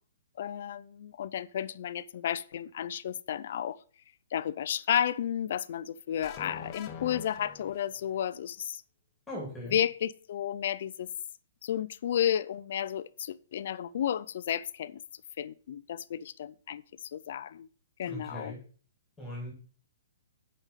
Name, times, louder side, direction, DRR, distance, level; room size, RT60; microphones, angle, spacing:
voice 1, 0.4-3.8 4.3-8.8 9.6-11.1 11.6-15.0 15.4-17.7 18.0-18.6, left 10 dB, 55° left, 0.5 m, -32 dB
sound 1, 6.2-8.2, left 7 dB, 30° left, 1.1 m, -44 dB
voice 2, 9.3-9.8 18.1-18.6 19.2-19.5, equal, 5° left, 3.0 m, -39 dB
8.1 x 5.2 x 5.7 m
hypercardioid pair, 150°, 0 cm